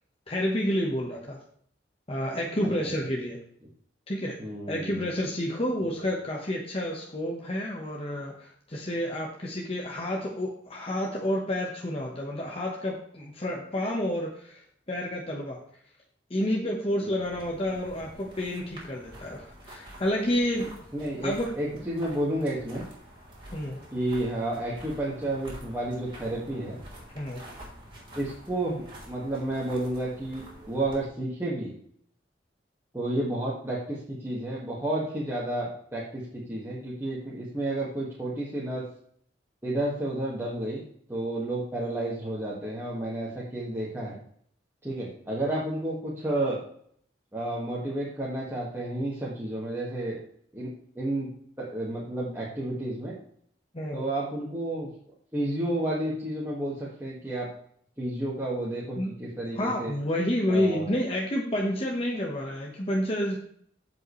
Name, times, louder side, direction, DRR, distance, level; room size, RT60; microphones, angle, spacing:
voice 1, 0.3-1.4 2.1-3.4 4.1-4.4 4.7-15.6 16.3-20.8 21.2-21.5 23.5-23.8 27.1-27.4 53.7-54.0 59.0-59.1 59.5-63.4, left 1 dB, 30° left, -1 dB, 1.2 m, -29 dB
voice 2, 4.4-5.1 20.9-22.8 23.9-26.8 28.2-31.7 32.9-38.9 39.6-40.8 41.1-44.2 44.8-46.6 47.3-50.2 50.5-51.3 51.6-53.1 53.9-54.9 55.3-57.5 58.0-59.9 60.5-60.9, right 1 dB, 15° right, -7 dB, 1.8 m, -31 dB
sound 1, 17.2-31.0, equal, 30° right, 3.8 m, -47 dB
15.0 x 5.4 x 3.2 m, 0.62 s
head